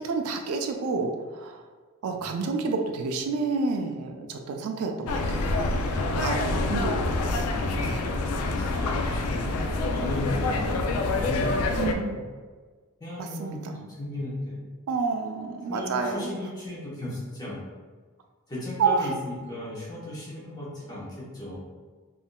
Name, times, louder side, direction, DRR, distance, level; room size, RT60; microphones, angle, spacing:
voice 1, 0.0-1.6 2.0-5.5 6.1-7.1 7.8-8.1 11.8-12.2 13.2-13.9 14.9-16.3 18.8-19.0, right 4 dB, 75° right, 4 dB, 0.3 m, -29 dB
sound 1, 5.1-11.9, left 2 dB, 85° left, 0.3 m, -27 dB
voice 2, 6.1-7.0 7.4-7.7 8.6-9.5 9.9-12.2 13.0-14.6 15.7-17.6 18.5-21.6, left 1 dB, 20° left, -7 dB, 0.9 m, -36 dB
3.5 x 2.5 x 2.2 m, 1.4 s
head